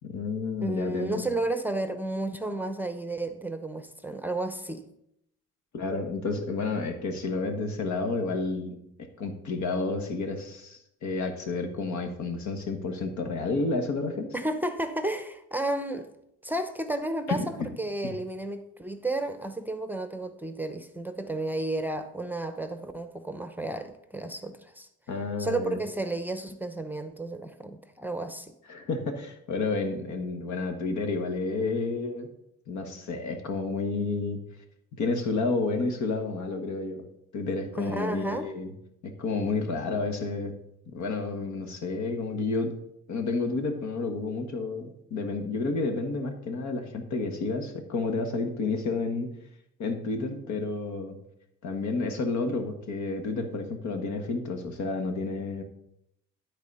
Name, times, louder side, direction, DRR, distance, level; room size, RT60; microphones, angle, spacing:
voice 1, 0.0-1.3 5.7-8.8 9.2-14.3 17.3-17.7 25.1-25.8 28.7-32.3 32.7-34.4 35.0-37.0 37.3-38.7 39.0-40.5 40.9-42.8 43.1-49.3 49.8-51.2 51.6-55.6, left 3 dB, 70° left, 5 dB, 1.6 m, -30 dB
voice 2, 0.6-4.9 14.3-16.1 16.4-24.9 25.4-28.6 37.8-38.5, right 2 dB, 5° right, 8 dB, 0.7 m, -32 dB
12.0 x 4.1 x 5.5 m, 0.79 s
cardioid pair, 90°, 30 cm